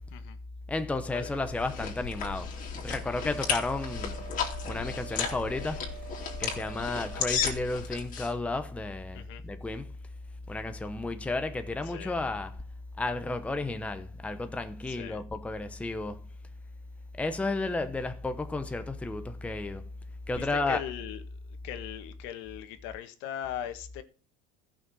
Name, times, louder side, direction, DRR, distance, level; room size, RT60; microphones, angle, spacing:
voice 1, 0.7-2.5 2.8-4.2 4.7-6.0 6.4-9.9 10.5-12.6 13.0-16.2 17.2-19.9 20.3-20.8, left 2 dB, 5° left, 0.8 m, -32 dB
Apple Chewing Slurps, 1.2-8.3, left 7 dB, 40° left, 2.9 m, -34 dB
Wind instrument woodwind instrument, 3.1-7.6, right 14 dB, 55° right, 4.2 m, -47 dB
voice 2, 14.9-15.2 20.3-21.2 21.6-24.0, left 11 dB, 65° left, 1.7 m, -39 dB
14.5 x 6.3 x 6.2 m
cardioid pair, 150°, 21 cm